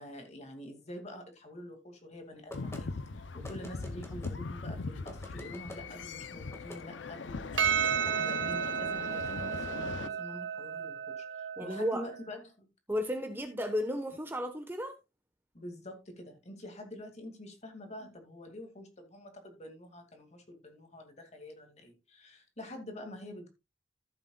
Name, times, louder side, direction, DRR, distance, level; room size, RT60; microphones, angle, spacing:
voice 1, 0.0-12.7 15.5-23.5, left 1 dB, 35° left, 2.4 m, -46 dB
sound 1, 2.5-10.1, left 3 dB, 75° left, 0.7 m, -40 dB
sound 2, 2.5-2.8 3.4-4.4 5.1-5.8 6.5-6.8, left 1 dB, 15° left, 1.9 m, -47 dB
Percussion, 7.6-12.2, right 8 dB, 75° right, 1.3 m, -33 dB
voice 2, 11.6-12.0 12.9-14.9, equal, 10° right, 1.2 m, -33 dB
14.5 x 8.0 x 2.4 m
head